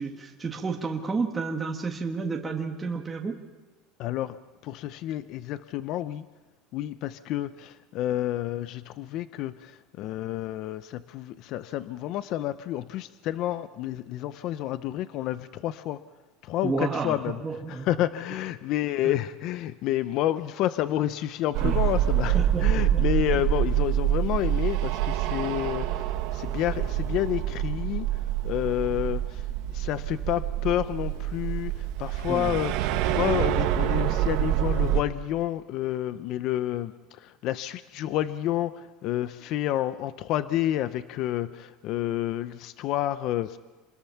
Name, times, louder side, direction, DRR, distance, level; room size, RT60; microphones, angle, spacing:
voice 1, 0.0-3.4 16.6-17.9 19.0-19.1 21.6-21.7 22.3-23.1 23.3-23.4 32.3-32.6, right 4 dB, 15° right, 1 dB, 1.6 m, -31 dB
voice 2, 4.0-6.3 6.7-16.0 16.4-17.4 17.7-43.6, left 13 dB, 50° left, 13 dB, 0.6 m, -30 dB
sound 1, 21.5-35.0, right 12 dB, 65° right, 1.5 m, -26 dB
27.0 x 21.0 x 5.8 m, 1.2 s
cardioid pair, 160°, 0 cm